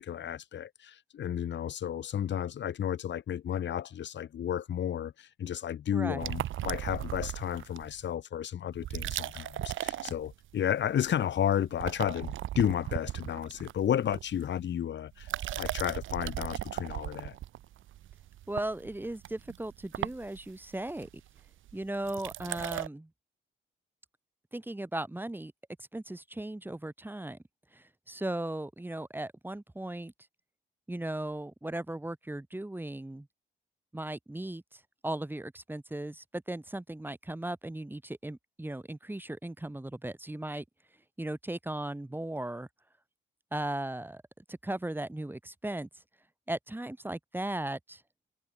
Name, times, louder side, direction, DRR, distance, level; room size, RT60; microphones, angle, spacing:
voice 1, 0.0-15.3 15.5-17.3, left 10 dB, 65° left, 6.8 m, -32 dB
voice 2, 5.9-6.3 18.5-21.1 21.7-23.1 24.5-25.5 25.9-27.4 27.7-30.1 30.9-33.3 33.9-40.6 41.2-42.7 43.5-44.2 44.5-45.9 46.5-48.0, right 1 dB, 10° right, 6.0 m, -37 dB
sound 1, 6.2-8.0 8.7-10.7 11.0-11.4 11.7-14.6 15.1-22.9, right 13 dB, 80° right, 3.5 m, -37 dB
cardioid pair, 90°, 20 cm